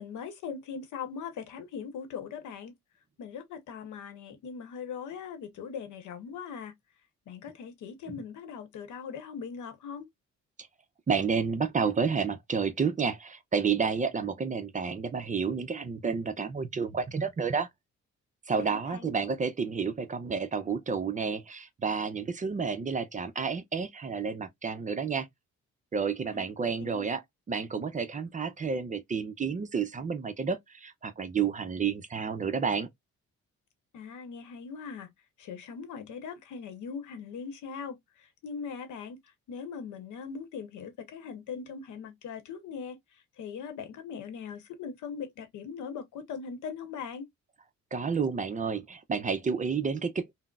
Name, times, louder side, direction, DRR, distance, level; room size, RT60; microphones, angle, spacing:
voice 1, 0.0-2.7 3.2-6.7 7.3-10.1 18.6-19.1 26.3-26.5 26.8-27.0 33.9-35.1 35.4-39.2 39.5-43.0 43.4-47.3, left 6 dB, 80° left, 0.8 m, -40 dB
voice 2, 11.1-17.7 18.5-25.3 25.9-27.2 27.5-32.9 47.9-50.3, right 5 dB, 25° right, 0.4 m, -30 dB
3.7 x 2.0 x 2.2 m
cardioid pair, 90°, 30 cm